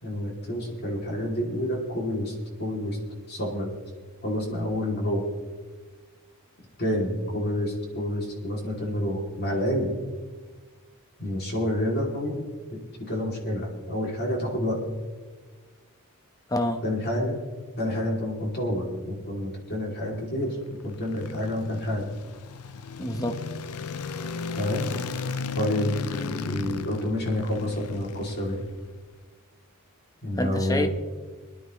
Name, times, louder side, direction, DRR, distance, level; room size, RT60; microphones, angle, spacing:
voice 1, 0.0-3.0 3.3-3.7 4.2-5.2 6.8-9.9 11.2-12.4 12.7-12.8 13.1-14.8 16.8-17.4 17.8-20.6 20.8-22.1 24.5-24.9 25.6-28.6 30.2-30.9, left 1 dB, 50° left, -2 dB, 3.0 m, -28 dB
voice 2, 16.5-16.8 23.0-23.4 30.4-30.9, left 1 dB, 15° left, 7 dB, 1.0 m, -27 dB
sound 1, 20.5-28.9, left 5 dB, 85° left, 0.6 m, -35 dB
24.0 x 11.0 x 3.3 m, 1.4 s
head